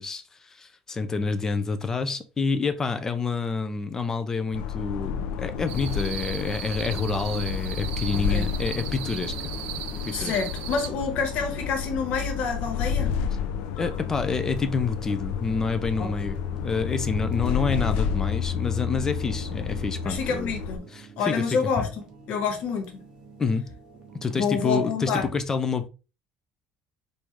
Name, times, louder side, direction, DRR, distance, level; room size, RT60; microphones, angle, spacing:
voice 1, 0.0-9.3 9.8-10.3 13.8-20.5 20.9-21.6 23.4-23.7 24.2-25.9, left 4 dB, 20° left, 0.5 m, -28 dB
sound 1, 4.5-20.8, left 7 dB, 85° left, 0.6 m, -30 dB
sound 2, 5.7-10.9, right 14 dB, 75° right, 0.4 m, -38 dB
voice 2, 8.1-8.5 10.1-13.1 16.0-16.1 20.0-20.8 21.2-23.0 24.3-25.3, left 5 dB, 60° left, 1.4 m, -28 dB
sound 3, 8.2-24.5, right 4 dB, 30° right, 1.1 m, -47 dB
4.7 x 2.6 x 3.5 m
cardioid pair, 140°, 3 cm